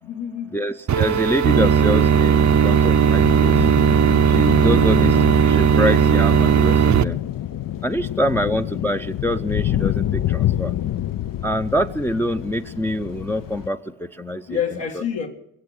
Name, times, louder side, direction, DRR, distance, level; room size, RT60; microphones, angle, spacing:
voice 1, 0.0-0.5 8.0-8.1 14.5-15.3, left 8 dB, 70° left, 2.3 m, -28 dB
voice 2, 0.5-3.6 4.3-7.2 7.8-10.7 11.4-14.6 15.0-15.1, equal, 5° left, 0.6 m, -25 dB
sound 1, 0.9-7.0, right 7 dB, 40° right, 0.7 m, -16 dB
sound 2, 3.2-13.7, left 12 dB, 50° left, 0.6 m, -27 dB
22.0 x 7.6 x 8.0 m
cardioid pair, 75°, 44 cm